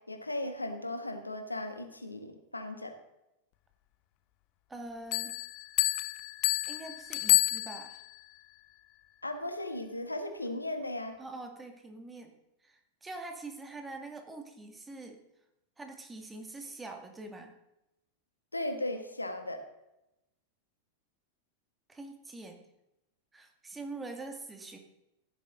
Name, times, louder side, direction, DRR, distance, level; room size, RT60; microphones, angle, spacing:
voice 1, 0.1-2.9 9.2-11.1 18.5-19.6, left 1 dB, 85° left, 7 dB, 1.6 m, -36 dB
voice 2, 4.7-5.4 6.7-8.0 11.2-12.4 12.6-15.2 15.8-17.6 21.9-22.7 23.3-24.8, right 2 dB, 10° right, 4 dB, 2.1 m, -44 dB
Bell, 5.1-8.2, left 18 dB, 45° left, 0.6 m, -29 dB
15.5 x 11.5 x 3.9 m, 0.90 s
figure-of-eight pair, 90°, 0 cm